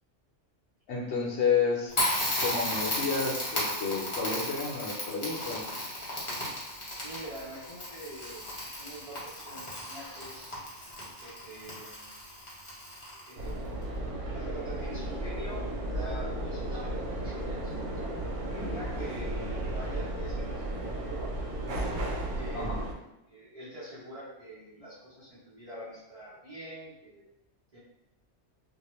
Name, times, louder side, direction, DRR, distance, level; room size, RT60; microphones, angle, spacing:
voice 1, 0.9-1.9 2.4-5.7 18.5-18.9 22.5-22.9, left 5 dB, 70° left, -2 dB, 0.8 m, -31 dB
Crackle, 1.9-13.5, left 1 dB, 30° left, 0.6 m, -35 dB
voice 2, 6.9-10.5 11.2-12.2 13.3-13.6 14.3-18.0 18.6-20.8 21.0-21.3 22.4-22.8 23.3-27.2 27.7-27.8, right 1 dB, 35° right, -9 dB, 0.7 m, -45 dB
sound 1, 13.4-22.9, right 1 dB, 90° right, 1.0 m, -34 dB
2.3 x 2.1 x 2.9 m, 0.90 s
omnidirectional pair, 1.2 m